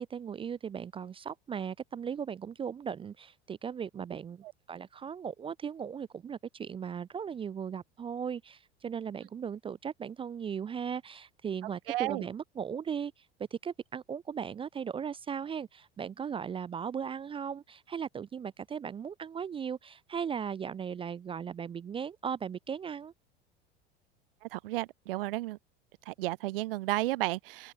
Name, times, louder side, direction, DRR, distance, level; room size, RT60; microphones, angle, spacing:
voice 1, 0.1-13.2 13.5-23.1, right 7 dB, 15° right, 0.5 m, -37 dB
voice 2, 11.9-12.2 24.4-25.6 26.1-27.7, right 18 dB, 60° right, 2.0 m, -32 dB
figure-of-eight pair, 75°, 32 cm